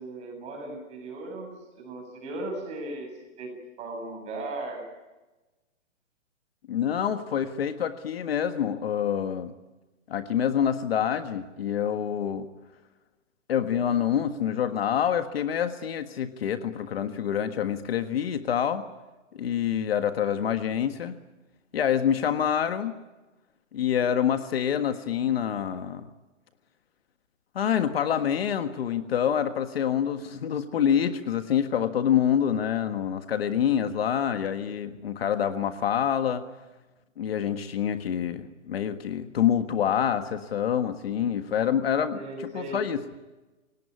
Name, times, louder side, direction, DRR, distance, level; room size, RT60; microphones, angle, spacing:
voice 1, 0.0-3.1 3.4-3.5 3.8-4.8 42.1-42.8, right 2 dB, 15° right, 1 dB, 7.8 m, -37 dB
voice 2, 6.7-9.5 10.1-12.5 13.5-18.9 19.3-21.2 21.7-22.9 23.7-26.0 27.6-36.4 37.2-42.2 42.5-43.0, left 9 dB, 50° left, 8 dB, 1.7 m, -26 dB
27.5 x 18.5 x 9.8 m, 1.1 s
hypercardioid pair, 165°, 38 cm